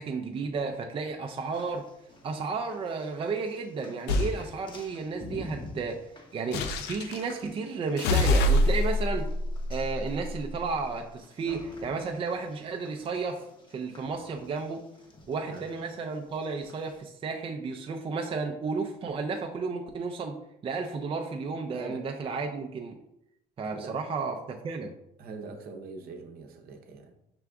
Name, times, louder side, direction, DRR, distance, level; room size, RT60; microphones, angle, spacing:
voice 1, 0.0-1.9 2.2-9.3 9.7-13.5 13.7-14.8 15.3-20.4 20.6-23.0 23.6-24.9, right 4 dB, 30° right, 3 dB, 0.4 m, -33 dB
sound 1, 1.3-17.0, left 2 dB, 30° left, 0.8 m, -50 dB
sound 2, 4.1-4.4 6.5-7.2 8.0-10.6, left 1 dB, 85° left, 0.5 m, -26 dB
voice 2, 21.7-22.2 23.7-24.0 25.2-27.1, right 4 dB, 65° right, 4 dB, 0.7 m, -42 dB
5.8 x 2.4 x 3.4 m, 0.82 s
cardioid pair, 110°, 17 cm